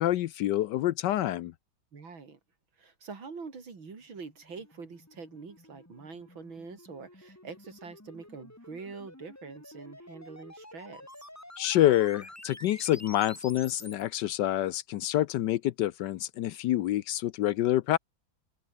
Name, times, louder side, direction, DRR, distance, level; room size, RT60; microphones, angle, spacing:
voice 1, 0.0-1.5 11.6-18.0, left 13 dB, 75° left, 1.2 m, -27 dB
voice 2, 1.9-2.4 2.8-11.3, right 4 dB, 80° right, 4.1 m, -45 dB
sound 1, 4.1-14.0, left 1 dB, 10° left, 2.3 m, -50 dB
omnidirectional pair, 2.1 m